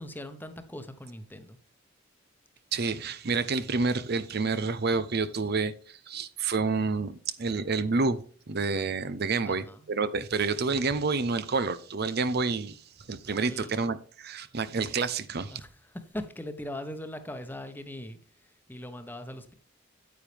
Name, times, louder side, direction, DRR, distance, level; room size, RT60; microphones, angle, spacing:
voice 1, 0.0-1.6 9.5-9.9 13.4-13.9 15.5-19.5, left 1 dB, 10° left, 1.1 m, -41 dB
voice 2, 2.7-8.2 8.5-12.8 13.1-15.6, right 4 dB, 50° right, 0.7 m, -29 dB
9.4 x 9.0 x 3.4 m
head